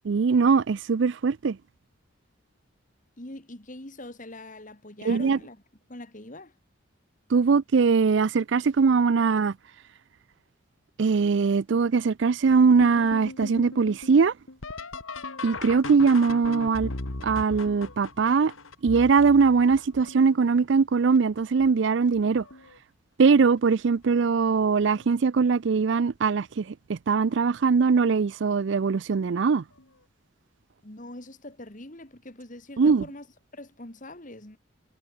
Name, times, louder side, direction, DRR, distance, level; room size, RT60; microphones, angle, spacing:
voice 1, 0.1-1.6 5.1-5.4 7.3-9.5 11.0-14.3 15.4-16.9 17.2-18.5 18.8-22.4 23.2-29.6 32.8-33.0, right 5 dB, 60° right, 0.4 m, -21 dB
voice 2, 3.2-5.6 5.9-6.5 30.8-33.3 33.5-34.6, left 1 dB, 40° left, 2.4 m, -43 dB
sound 1, 12.8-20.5 21.1-21.7 22.1-22.8 24.0-24.1 24.9-25.2 27.3-27.5 29.8-29.9, left 2 dB, 85° left, 2.3 m, -38 dB
head